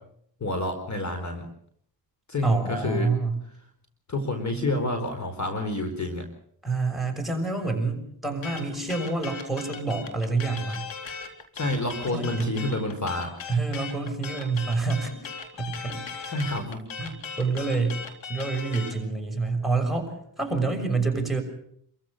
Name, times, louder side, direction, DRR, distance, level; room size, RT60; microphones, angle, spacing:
voice 1, 0.4-1.4 2.3-3.1 4.1-6.2 11.5-13.3 16.3-16.8, left 2 dB, 40° left, 6 dB, 4.5 m, -28 dB
voice 2, 2.4-3.4 6.6-10.8 12.0-12.5 13.5-15.1 15.6-16.4 17.0-18.0 18.3-21.4, right 3 dB, ahead, 2 dB, 6.4 m, -27 dB
sound 1, 8.4-19.0, left 5 dB, 85° left, 3.6 m, -38 dB
27.5 x 15.0 x 6.7 m, 0.65 s
cardioid pair, 80°, 45 cm